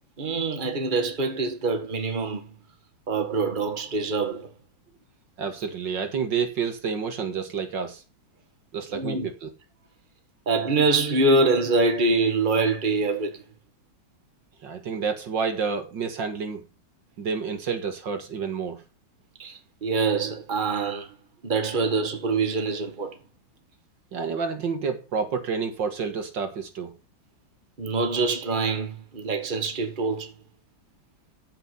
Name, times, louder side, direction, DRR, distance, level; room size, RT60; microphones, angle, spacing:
voice 1, 0.2-2.5 3.1-4.5 8.9-9.3 10.5-13.4 19.4-21.1 21.4-23.1 27.8-30.3, right 3 dB, 25° right, 1.9 m, -25 dB
voice 2, 5.4-8.0 8.7-9.5 14.6-16.6 17.2-18.8 24.1-26.9, right 6 dB, 65° right, 2.3 m, -29 dB
14.5 x 6.2 x 5.6 m
omnidirectional pair, 2.1 m